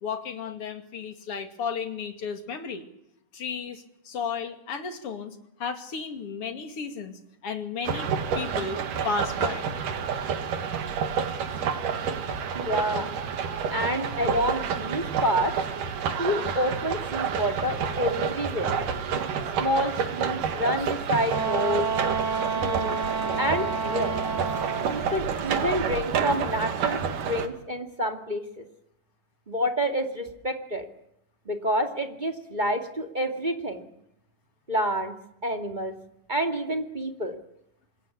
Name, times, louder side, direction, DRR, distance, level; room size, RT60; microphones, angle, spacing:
voice 1, 0.0-2.9 3.3-8.8 9.0-9.7, left 5 dB, 45° left, 7 dB, 3.1 m, -34 dB
sound 1, 7.8-27.5, right 6 dB, 80° right, 3.5 m, -29 dB
voice 2, 12.5-13.1 13.7-15.5 16.2-18.7 19.6-21.9 22.5-23.0 23.4-24.2 24.9-28.6 29.5-30.9 31.5-33.9 34.7-35.2 35.4-35.9 36.3-37.4, equal, 15° right, 5 dB, 1.9 m, -28 dB
Wind instrument woodwind instrument, 21.3-25.0, right 5 dB, 30° right, 4.4 m, -29 dB
26.5 x 21.5 x 8.5 m, 0.77 s
omnidirectional pair, 3.6 m